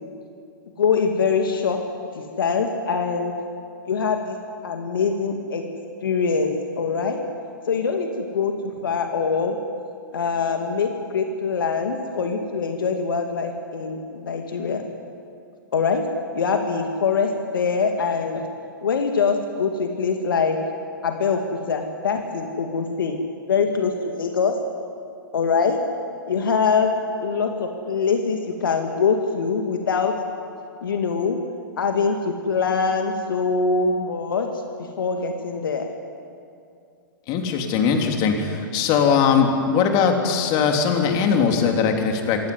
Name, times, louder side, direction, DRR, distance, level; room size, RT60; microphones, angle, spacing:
voice 1, 0.8-1.8 2.2-3.3 3.9-4.4 4.6-5.6 6.0-7.2 7.7-9.6 10.1-14.8 15.7-16.1 16.3-18.4 18.8-20.7 21.0-23.2 23.5-24.6 25.3-25.8 26.3-30.2 30.8-31.4 31.8-34.5 35.0-35.9, left 5 dB, 75° left, 4 dB, 2.3 m, -23 dB
voice 2, 37.3-42.5, left 6 dB, 40° left, 3 dB, 3.3 m, -20 dB
26.5 x 13.0 x 9.7 m, 2.4 s
hypercardioid pair, 115°, 11 cm